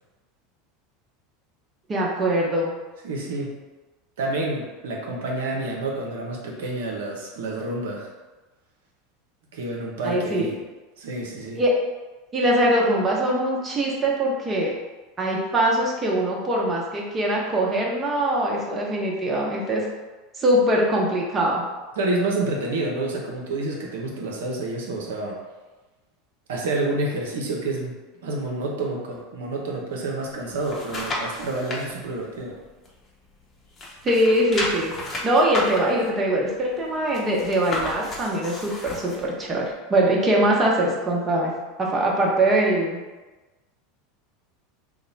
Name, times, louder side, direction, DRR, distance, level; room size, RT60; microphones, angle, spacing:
voice 1, 1.9-2.7 10.0-10.5 11.6-11.7 12.3-14.7 15.2-19.9 20.4-21.6 34.0-34.9 35.2-41.5 41.8-43.0, right 1 dB, 25° right, -2 dB, 0.8 m, -22 dB
voice 2, 3.0-3.5 4.2-8.1 9.5-10.5 11.0-11.6 22.0-25.4 26.5-28.0 28.2-32.5, right 2 dB, 75° right, -2 dB, 0.6 m, -28 dB
sound 1, 30.2-31.8 32.3-33.4 33.7-39.3 39.7-39.8, left 1 dB, 30° left, 0.8 m, -32 dB
2.8 x 2.1 x 3.9 m, 1.2 s
hypercardioid pair, 85°, 0 cm